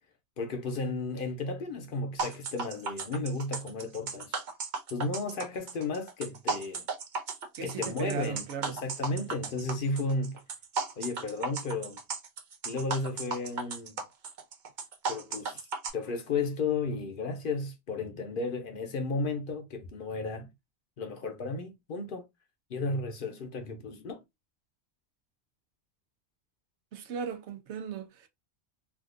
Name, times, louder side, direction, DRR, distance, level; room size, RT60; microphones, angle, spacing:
voice 1, 0.4-4.3 4.9-6.8 7.6-10.4 11.0-12.0 12.6-14.0 15.1-15.6 15.9-20.5 21.0-22.2 22.7-24.2, left 3 dB, 55° left, 0.8 m, -33 dB
sound 1, 2.2-15.9, right 4 dB, 55° right, 0.6 m, -35 dB
voice 2, 7.6-8.8 26.9-28.3, right 7 dB, 90° right, 1.0 m, -36 dB
3.5 x 2.4 x 2.5 m
omnidirectional pair, 1.1 m